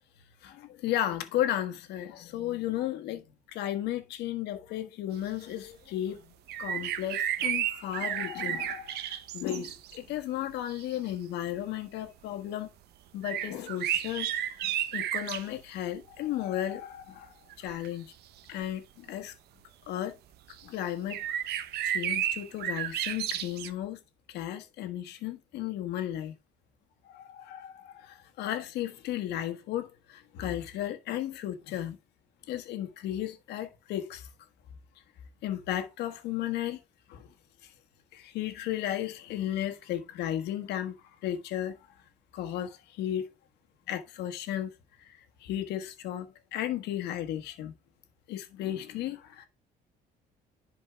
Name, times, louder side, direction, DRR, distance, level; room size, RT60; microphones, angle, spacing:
voice 1, 0.4-6.2 6.6-12.7 13.1-14.3 14.6-18.1 18.5-19.3 19.9-20.2 20.6-21.2 21.8-24.0 24.3-26.3 27.1-32.0 32.5-34.3 35.4-36.8 37.1-37.3 38.1-40.9 41.2-41.8 42.3-43.3 43.9-44.7 45.0-47.7 48.3-49.5, left 12 dB, 80° left, 1.5 m, -34 dB
sound 1, 6.5-10.0 10.7-10.8 13.2-15.5 17.5-17.9 18.6-18.7 20.5-20.6 21.1-23.7, right 11 dB, 75° right, 0.8 m, -32 dB
11.0 x 4.6 x 3.5 m
cardioid pair, 110°, 17 cm